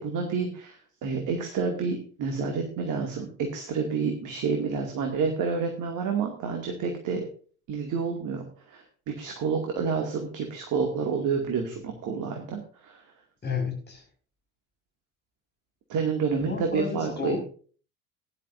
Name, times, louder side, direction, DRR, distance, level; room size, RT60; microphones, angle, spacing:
voice 1, 0.0-7.3 7.7-13.0 15.9-17.4, right 5 dB, 45° right, 3 dB, 2.3 m, -29 dB
voice 2, 13.4-14.0 16.4-17.4, left 5 dB, 25° left, 1 dB, 5.2 m, -32 dB
17.5 x 11.0 x 2.6 m, 0.41 s
figure-of-eight pair, 65°, 43 cm